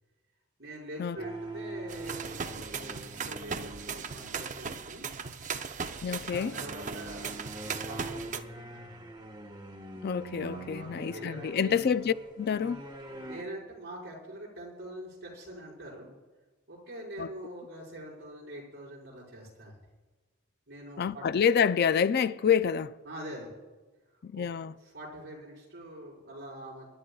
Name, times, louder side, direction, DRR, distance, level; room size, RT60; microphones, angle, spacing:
voice 1, 0.6-5.1 6.3-7.5 7.8-8.9 10.3-11.8 13.2-16.1 16.7-19.7 20.7-21.2 23.0-23.5 24.3-24.5 24.8-26.9, right 1 dB, 55° right, 4.9 m, -44 dB
sound 1, 1.2-4.7 6.0-13.4, right 2 dB, 20° right, 1.2 m, -44 dB
sound 2, 1.9-8.4, right 5 dB, 40° right, 0.6 m, -38 dB
voice 2, 6.0-6.5 10.0-12.8 17.2-17.3 21.0-22.9 24.2-24.7, left 7 dB, 55° left, 0.4 m, -27 dB
25.5 x 11.5 x 2.3 m
head